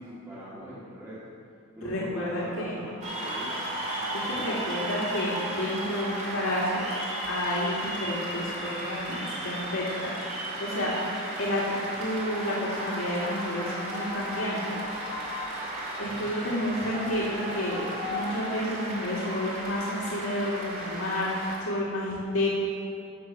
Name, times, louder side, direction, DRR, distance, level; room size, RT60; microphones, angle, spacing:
voice 1, 0.0-1.3 1.7-4.1, right 1 dB, 10° right, -11 dB, 2.3 m, -42 dB
voice 2, 1.8-2.8 4.2-6.8 7.2-10.3 10.6-10.9 11.4-14.7 16.0-22.5, left 1 dB, 75° left, -6 dB, 2.3 m, -30 dB
Cheering / Applause, 3.0-21.6, right 1 dB, 35° right, 2.6 m, -34 dB
14.0 x 6.3 x 5.7 m, 2.4 s
head